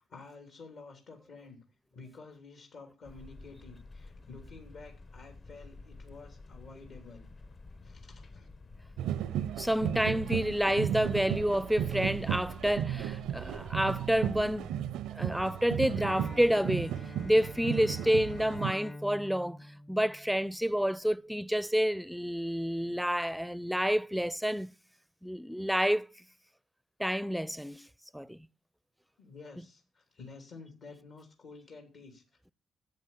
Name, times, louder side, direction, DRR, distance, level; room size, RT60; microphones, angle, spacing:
voice 1, 0.0-1.6 1.9-7.3 7.8-8.5 29.2-32.5, left 4 dB, 65° left, 3.3 m, -51 dB
sound 1, 3.0-14.7, left 3 dB, 45° left, 1.2 m, -50 dB
sound 2, 9.0-18.7, right 10 dB, 90° right, 0.6 m, -35 dB
voice 2, 9.6-14.8 15.1-17.0 17.2-19.6 19.9-24.7 25.2-26.1 27.0-27.9 28.1-28.5, equal, ahead, 0.5 m, -29 dB
Bowed string instrument, 16.0-20.8, left 1 dB, 25° left, 0.8 m, -47 dB
10.5 x 8.1 x 7.2 m
cardioid pair, 70°, 0 cm